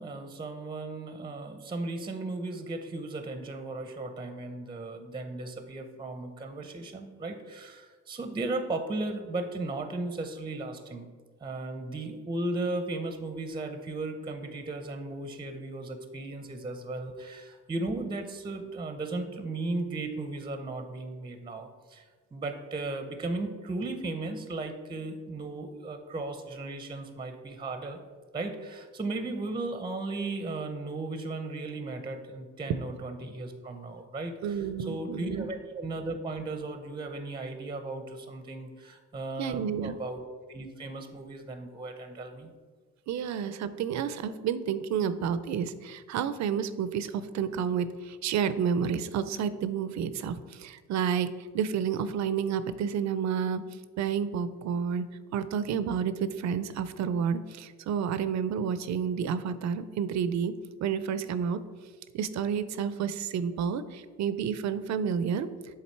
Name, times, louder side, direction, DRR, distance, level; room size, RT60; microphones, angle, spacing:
voice 1, 0.0-11.1 11.4-22.1 22.3-28.0 28.3-40.2 40.5-42.5, right 2 dB, 15° right, 7 dB, 0.6 m, -36 dB
voice 2, 34.4-35.5 39.4-39.9 43.1-53.6 54.0-60.5 60.8-61.6 62.1-65.5, right 7 dB, 65° right, 13 dB, 0.5 m, -30 dB
7.3 x 3.7 x 4.5 m, 1.5 s
cardioid pair, 90°, 30 cm